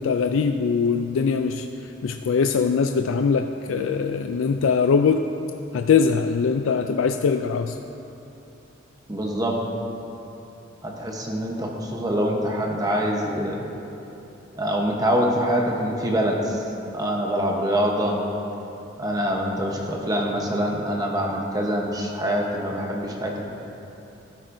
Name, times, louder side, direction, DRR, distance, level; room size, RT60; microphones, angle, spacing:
voice 1, 0.0-1.7 2.0-5.2 5.7-7.8, left 5 dB, 85° left, 6 dB, 0.4 m, -22 dB
voice 2, 9.1-9.6 10.8-13.6 14.6-16.6 16.9-18.2 19.0-23.4, equal, 20° right, 0 dB, 1.0 m, -25 dB
13.0 x 11.5 x 2.7 m, 3.0 s
head